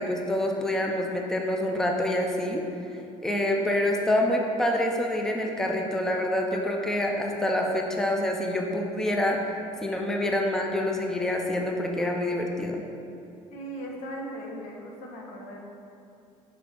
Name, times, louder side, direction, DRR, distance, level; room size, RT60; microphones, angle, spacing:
voice 1, 0.0-2.6 3.2-9.4 9.8-12.8, left 1 dB, 5° left, 1 dB, 0.4 m, -26 dB
voice 2, 13.5-15.6, right 1 dB, 85° left, 0 dB, 1.0 m, -38 dB
5.9 x 5.0 x 3.8 m, 2.6 s
cardioid pair, 140°, 13 cm